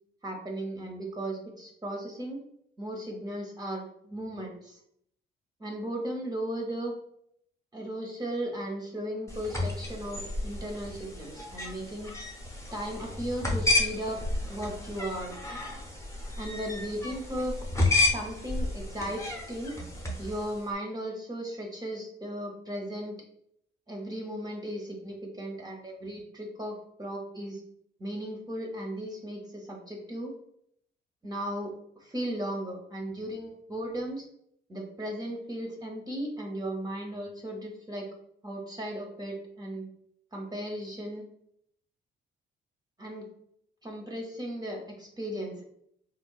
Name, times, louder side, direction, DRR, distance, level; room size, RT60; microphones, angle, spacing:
voice 1, 0.2-2.4 2.8-4.8 5.6-7.0 7.7-12.1 12.7-14.2 14.5-15.4 16.4-17.5 18.1-19.7 20.2-23.2 23.9-27.6 28.0-30.3 31.2-31.7 32.0-34.2 34.7-38.1 38.4-39.9 40.3-41.2 43.0-43.3 43.8-45.6, right 1 dB, 20° right, 0 dB, 0.6 m, -36 dB
sound 1, 9.3-20.6, left 2 dB, 15° left, 0.7 m, -31 dB
3.6 x 2.3 x 2.3 m, 0.70 s
cardioid pair, 90°, 20 cm